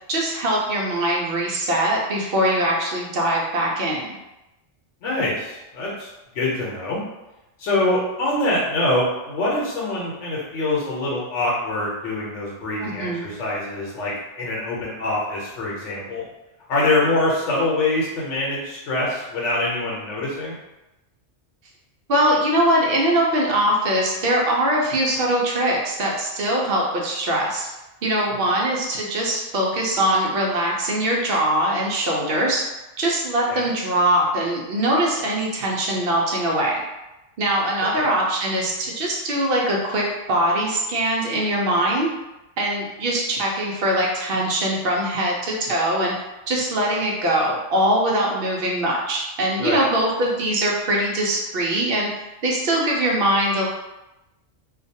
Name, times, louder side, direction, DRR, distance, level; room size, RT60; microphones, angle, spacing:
voice 1, 0.1-4.2 12.8-13.3 22.1-27.7 28.0-32.6 33.0-36.8 37.4-42.1 42.6-46.1 46.5-52.1 52.4-53.7, right 1 dB, 60° right, -2 dB, 0.7 m, -22 dB
voice 2, 5.0-6.1 6.3-7.0 7.6-16.2 16.7-20.5 28.3-28.4 33.5-33.7 37.9-38.1 49.6-49.8, left 2 dB, 90° left, -5 dB, 1.0 m, -24 dB
2.4 x 2.2 x 2.6 m, 0.97 s
omnidirectional pair, 1.2 m